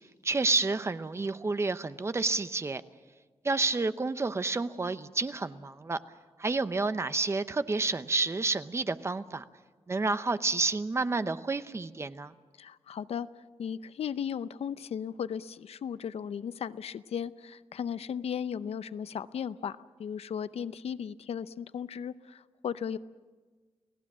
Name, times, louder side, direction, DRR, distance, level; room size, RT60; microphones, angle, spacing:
voice 1, 0.2-2.8 3.4-6.0 6.4-9.4 9.9-12.3, right 3 dB, 25° right, 12 dB, 0.8 m, -29 dB
voice 2, 12.6-13.3 13.6-23.0, left 8 dB, 85° left, 15 dB, 0.6 m, -36 dB
29.5 x 18.0 x 7.4 m, 1.4 s
wide cardioid pair, 155°, 10 cm